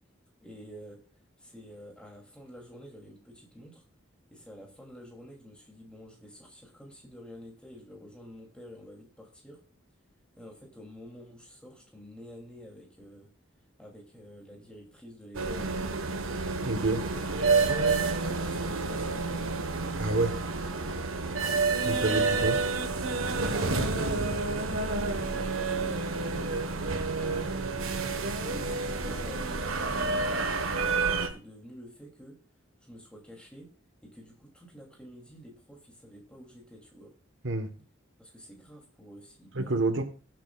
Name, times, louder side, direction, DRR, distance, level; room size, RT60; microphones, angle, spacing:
voice 1, 0.4-1.0 1.4-3.8 4.3-9.6 10.4-13.3 13.8-15.7 16.8-17.2 18.2-19.6 21.3-21.5 23.5-27.5 28.2-32.4 32.8-33.7 34.0-37.1 38.2-40.0, equal, 5° left, 3.0 m, -49 dB
sound 1, 15.3-31.3, right 3 dB, 90° right, 1.4 m, -29 dB
voice 2, 16.6-17.0 20.0-20.4 21.8-22.6 37.4-37.7 39.5-40.0, right 2 dB, 65° right, 1.3 m, -28 dB
20.5 x 7.7 x 2.5 m
head